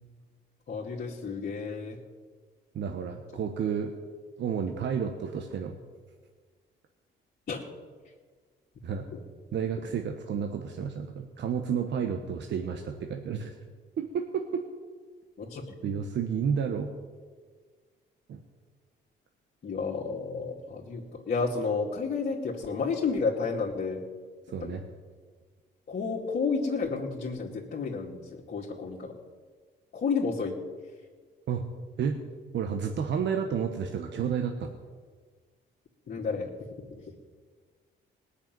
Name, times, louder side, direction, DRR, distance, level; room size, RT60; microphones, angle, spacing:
voice 1, 0.7-2.0 7.5-7.6 9.1-9.2 15.4-15.7 19.6-24.0 24.6-24.8 25.9-29.1 29.9-30.5 36.1-36.5 36.9-37.0, left 4 dB, 55° left, -5 dB, 2.4 m, -31 dB
voice 2, 2.7-3.9 4.4-5.7 8.8-9.1 9.5-13.5 14.0-14.6 15.8-16.9 18.3-18.4 24.5-24.8 31.5-31.6 32.0-32.2 32.5-34.7, right 7 dB, 65° right, 4 dB, 1.3 m, -31 dB
18.5 x 6.7 x 9.2 m, 1.5 s
cardioid pair, 90°, 20 cm